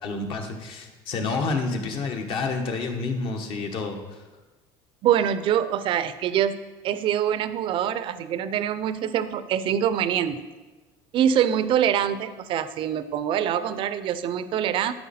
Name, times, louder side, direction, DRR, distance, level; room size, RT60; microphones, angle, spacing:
voice 1, 0.0-4.2, left 3 dB, 50° left, 4 dB, 1.2 m, -29 dB
voice 2, 5.0-6.6 6.8-10.5 11.1-14.9, right 9 dB, 50° right, 13 dB, 0.5 m, -24 dB
12.0 x 4.4 x 4.2 m, 1.2 s
cardioid pair, 125°, 11 cm